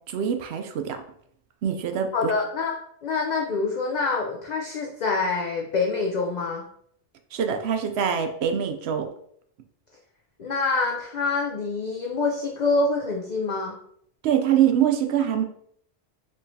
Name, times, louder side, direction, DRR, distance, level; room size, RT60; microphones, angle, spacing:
voice 1, 0.1-1.0 1.6-2.3 7.3-9.1 14.2-15.4, right 9 dB, 70° right, 6 dB, 0.8 m, -24 dB
voice 2, 2.1-2.7 3.0-6.6 10.4-13.8, left 3 dB, 55° left, 0 dB, 0.5 m, -26 dB
4.4 x 3.0 x 2.7 m, 0.65 s
omnidirectional pair, 1.2 m